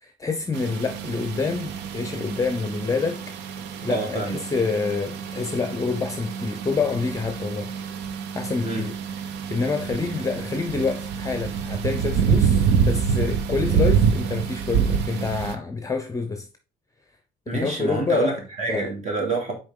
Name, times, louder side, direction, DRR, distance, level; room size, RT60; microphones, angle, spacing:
voice 1, 0.0-3.3 3.8-7.7 8.0-9.0 9.5-16.5 17.5-18.4 18.7-18.9, left 4 dB, 20° left, 0.6 m, -27 dB
sound 1, 0.5-15.6, right 7 dB, 90° right, 0.7 m, -26 dB
voice 2, 3.9-4.4 8.6-8.9 17.5-19.5, right 3 dB, 45° right, 2.5 m, -27 dB
6.4 x 4.3 x 3.7 m
cardioid pair, 110°, 17 cm